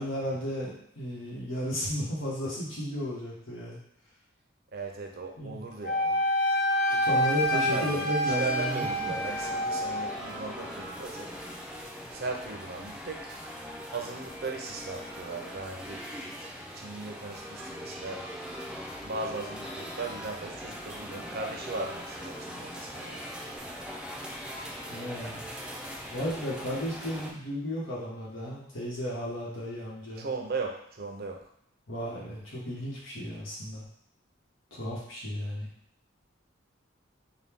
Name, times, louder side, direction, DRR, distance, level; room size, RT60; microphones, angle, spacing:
voice 1, 0.0-3.8 5.4-5.7 7.0-9.1 24.9-25.5 26.1-30.3 31.9-33.8 34.7-35.7, equal, 85° left, -5 dB, 1.4 m, -34 dB
voice 2, 4.7-6.2 6.9-11.3 12.1-13.4 13.9-16.0 16.7-18.2 19.0-23.3 30.2-31.4, right 3 dB, 50° right, 2 dB, 0.6 m, -37 dB
Wind instrument woodwind instrument, 5.8-10.1, equal, 55° left, 0.6 m, -27 dB
sound 1, 8.2-27.3, equal, 5° right, 0.5 m, -41 dB
4.0 x 2.3 x 3.6 m, 0.71 s
head